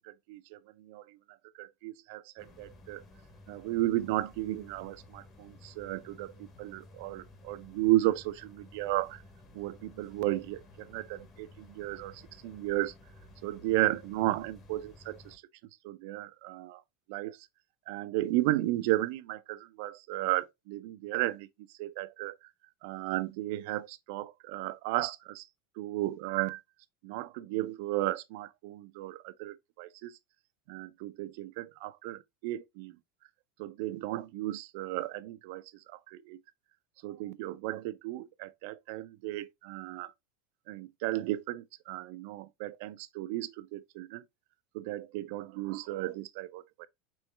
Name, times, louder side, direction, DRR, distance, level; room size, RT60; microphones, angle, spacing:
voice 1, 0.0-1.2 1.6-3.0 3.5-9.2 9.5-12.9 13.4-15.4 15.8-16.8 17.1-17.4 17.9-21.5 21.8-22.4 22.8-25.5 25.8-26.6 27.0-30.1 30.7-33.0 33.6-35.6 35.9-36.4 37.0-40.1 40.7-44.2 44.7-46.9, right 16 dB, 60° right, 0.4 m, -34 dB
sound 1, 2.4-15.4, left 2 dB, 25° left, 1.2 m, -55 dB
4.6 x 3.1 x 3.2 m
supercardioid pair, 150°, 0 cm